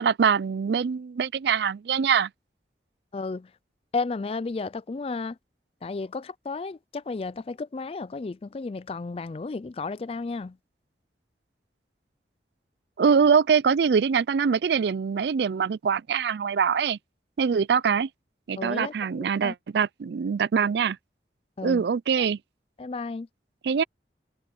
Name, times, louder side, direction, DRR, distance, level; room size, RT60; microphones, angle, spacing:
voice 1, 0.0-2.3 13.0-17.0 17.4-18.1 18.5-21.0 21.6-22.4 23.6-23.8, right 6 dB, 70° right, 0.4 m, -23 dB
voice 2, 3.1-3.5 3.9-5.4 5.8-10.6 18.6-19.5 21.6-21.8 22.2-22.3 22.8-23.3, left 3 dB, 35° left, 0.4 m, -33 dB
head